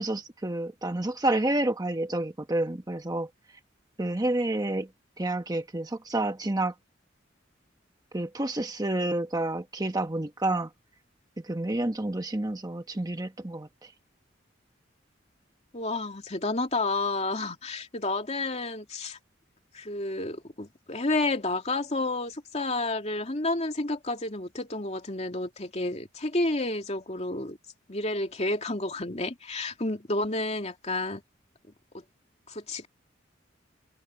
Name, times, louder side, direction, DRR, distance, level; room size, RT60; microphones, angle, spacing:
voice 1, 0.0-3.3 4.0-4.9 5.2-6.7 8.1-10.7 11.4-13.7, right 1 dB, 20° right, 1.0 m, -29 dB
voice 2, 15.7-19.2 19.7-27.6 27.9-31.2 31.9-32.0 32.5-32.9, left 2 dB, 35° left, 2.6 m, -30 dB
head